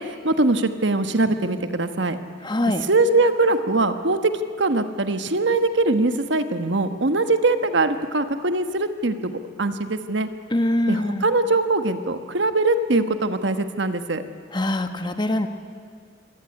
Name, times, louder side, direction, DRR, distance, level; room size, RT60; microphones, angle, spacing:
voice 1, 0.0-2.2 2.9-4.3 4.6-10.3 10.9-14.2, right 2 dB, 70° right, 9 dB, 1.3 m, -22 dB
voice 2, 2.4-2.8 10.5-11.3 14.5-15.5, left 1 dB, 25° left, 8 dB, 1.1 m, -23 dB
25.0 x 16.5 x 9.8 m, 2.1 s
head